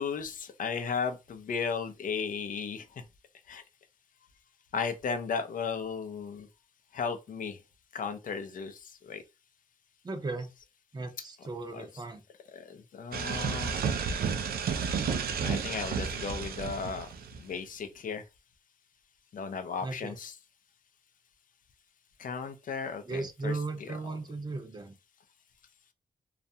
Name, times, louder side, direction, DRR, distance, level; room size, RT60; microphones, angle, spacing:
voice 1, 0.0-3.0 3.5-3.6 4.7-6.5 6.9-7.6 7.9-9.2 11.7-11.9 12.5-13.8 15.4-17.1 17.4-18.2 19.3-20.3 22.2-23.9, left 5 dB, 60° left, 0.5 m, -35 dB
voice 2, 10.0-10.5 10.9-12.2 19.8-20.2 23.0-24.9, right 3 dB, 25° right, 0.6 m, -36 dB
sound 1, 13.1-17.6, right 6 dB, 75° right, 0.4 m, -32 dB
2.4 x 2.1 x 2.7 m
cardioid pair, 85°, 16 cm